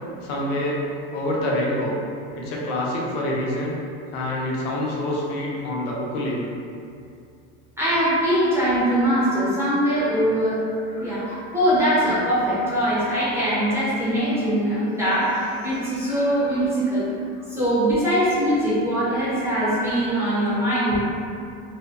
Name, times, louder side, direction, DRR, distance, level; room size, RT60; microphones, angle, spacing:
voice 1, 0.2-0.8 1.1-1.9 2.4-3.7 4.1-6.5, left 1 dB, 75° left, -3 dB, 0.6 m, -26 dB
voice 2, 7.8-17.1 17.5-21.0, equal, 10° right, -10 dB, 0.4 m, -22 dB
2.5 x 2.2 x 2.3 m, 2.4 s
supercardioid pair, 155°, 30 cm